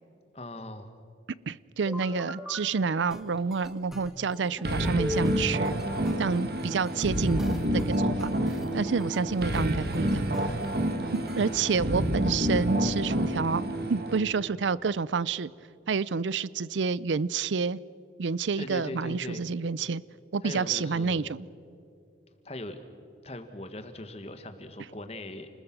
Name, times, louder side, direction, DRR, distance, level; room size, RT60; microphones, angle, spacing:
voice 1, 0.3-0.9 2.0-2.2 11.4-12.0 18.6-19.5 20.4-21.4 22.4-22.8 23.2-25.5, left 1 dB, 35° left, 8 dB, 1.6 m, -40 dB
voice 2, 1.5-5.8 6.2-7.4 7.7-10.6 11.1-15.5 15.9-17.8 18.2-20.0 20.3-21.5, right 5 dB, 85° right, 20 dB, 0.5 m, -29 dB
sound 1, 1.9-2.6 3.1-11.6, left 1 dB, ahead, 1.5 m, -39 dB
sound 2, 4.6-14.2, equal, 55° right, 1.7 m, -28 dB
29.0 x 20.5 x 6.1 m, 2.6 s
head